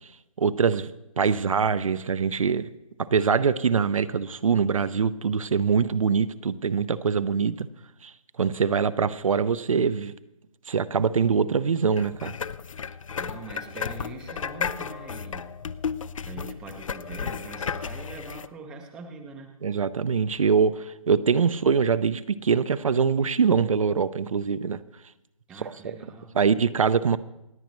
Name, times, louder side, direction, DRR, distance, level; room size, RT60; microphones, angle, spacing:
voice 1, 0.4-2.7 3.0-7.7 8.0-8.1 8.4-10.1 10.7-12.3 19.6-24.8 25.6-26.0 26.3-27.2, right 6 dB, 65° right, 13 dB, 0.6 m, -23 dB
sound 1, 12.0-18.5, left 6 dB, 60° left, 0.5 m, -33 dB
voice 2, 13.2-15.5 16.3-19.5 25.5-26.4, right 3 dB, 5° right, 2 dB, 0.6 m, -42 dB
27.0 x 9.2 x 3.1 m, 0.91 s
hypercardioid pair, 160°, 19 cm